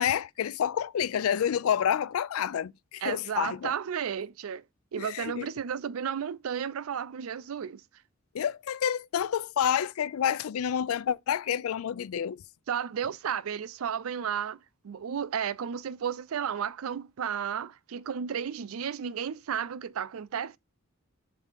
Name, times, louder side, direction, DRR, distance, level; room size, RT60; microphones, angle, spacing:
voice 1, 0.0-3.7 5.0-5.5 8.3-12.4, left 8 dB, 80° left, 0.4 m, -29 dB
voice 2, 3.0-4.6 4.9-7.8 12.7-14.6 14.8-20.6, right 8 dB, 75° right, 0.4 m, -33 dB
7.2 x 2.7 x 5.0 m
head